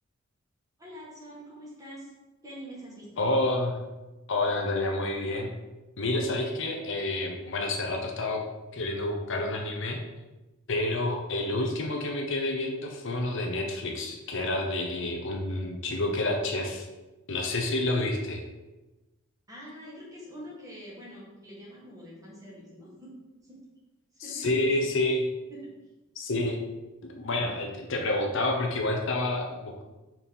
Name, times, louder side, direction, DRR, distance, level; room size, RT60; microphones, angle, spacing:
voice 1, 0.8-2.1 2.4-3.2 19.5-23.1 24.1-24.9, equal, 15° right, -6 dB, 1.9 m, -45 dB
voice 2, 3.2-3.8 4.3-5.5 6.0-8.4 8.7-10.0 10.7-16.9 17.3-18.4 24.2-25.3 26.2-26.6 27.1-29.8, left 2 dB, 60° left, 2 dB, 0.8 m, -29 dB
4.5 x 4.3 x 5.3 m, 1.1 s
head